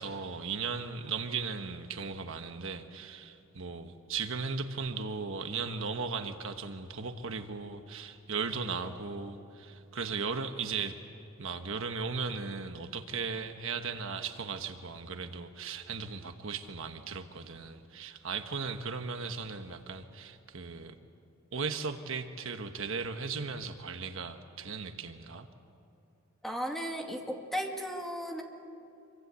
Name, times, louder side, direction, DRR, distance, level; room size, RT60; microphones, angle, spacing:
voice 1, 0.0-11.0 11.4-20.9 21.5-25.5, right 5 dB, 65° right, 7 dB, 1.2 m, -37 dB
voice 2, 26.4-28.4, equal, ahead, 1 dB, 2.3 m, -35 dB
26.5 x 24.5 x 8.2 m, 2.7 s
head